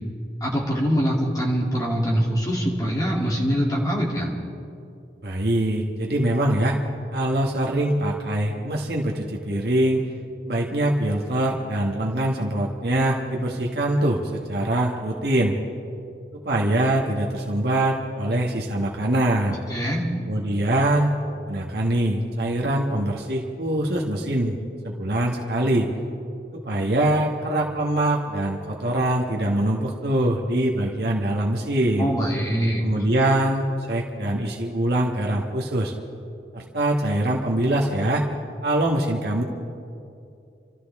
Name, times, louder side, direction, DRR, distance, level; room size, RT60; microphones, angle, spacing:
voice 1, 0.4-4.3 19.7-20.1 32.0-32.8, equal, 20° left, -3 dB, 2.8 m, -23 dB
voice 2, 5.2-6.8 7.1-10.0 10.5-15.6 16.3-19.6 20.3-21.1 21.5-24.6 24.8-25.9 26.5-32.1 32.8-35.9 36.5-38.2 38.6-39.4, right 1 dB, 60° right, -2 dB, 1.3 m, -23 dB
29.0 x 13.5 x 3.6 m, 2.6 s
head